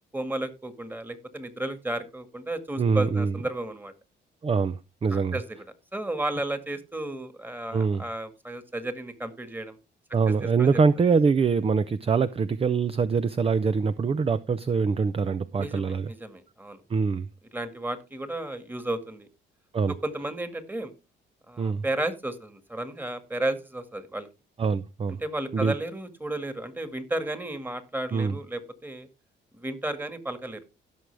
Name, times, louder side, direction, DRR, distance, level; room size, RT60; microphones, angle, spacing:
voice 1, 0.1-3.9 5.1-5.6 5.9-9.8 10.4-10.8 15.6-16.8 17.5-19.3 20.0-20.9 21.5-24.3 25.2-29.1 29.5-30.6, right 1 dB, 10° right, 1.8 m, -33 dB
voice 2, 2.8-3.3 4.4-5.4 7.7-8.0 10.1-16.1 16.9-17.3 19.7-19.9 21.6-21.8 24.6-25.2 25.5-25.7 28.1-28.4, right 5 dB, 30° right, 0.6 m, -24 dB
16.5 x 6.2 x 3.4 m
cardioid pair, 90°, 20 cm